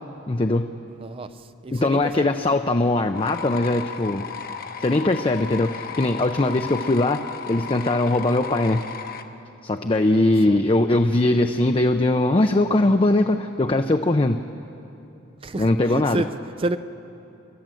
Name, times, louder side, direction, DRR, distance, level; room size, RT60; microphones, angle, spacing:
voice 1, 0.3-0.7 1.7-4.2 4.8-8.8 9.6-14.4 15.5-16.2, left 2 dB, 25° left, 6 dB, 0.5 m, -21 dB
voice 2, 1.0-2.3 10.1-10.6 15.4-16.8, right 2 dB, 25° right, 12 dB, 0.4 m, -30 dB
sound 1, 3.1-9.2, left 6 dB, 45° left, 0.9 m, -34 dB
30.0 x 12.0 x 7.7 m, 2.9 s
head